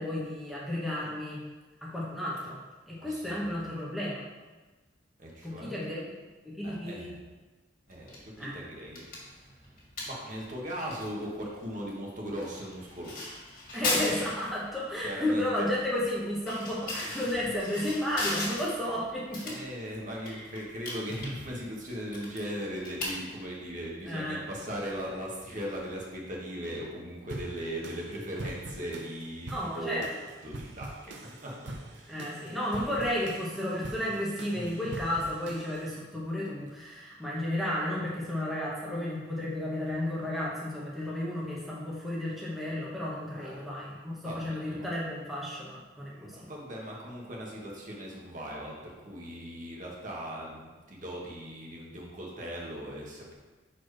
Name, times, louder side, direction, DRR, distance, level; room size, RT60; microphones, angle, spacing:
voice 1, 0.0-1.4 1.8-2.6 2.9-4.2 5.4-6.1 6.4-7.1 8.4-8.5 13.7-19.5 20.3-20.4 24.1-24.4 29.5-30.1 32.1-46.5, left 1 dB, ahead, -7 dB, 1.1 m, -33 dB
voice 2, 3.0-3.7 5.2-5.7 6.6-7.2 7.9-9.7 10.1-13.3 13.9-14.2 15.0-15.5 19.4-30.0 30.4-32.5 32.8-33.2 33.8-33.9 34.5-34.6 36.1-36.2 43.4-43.6 44.2-44.9 46.0-53.3, equal, 45° right, -3 dB, 1.3 m, -39 dB
sound 1, 7.9-26.2, left 2 dB, 45° left, 1.9 m, -40 dB
sound 2, 27.3-36.0, right 2 dB, 70° right, 0.7 m, -44 dB
5.9 x 4.4 x 4.8 m, 1.2 s
head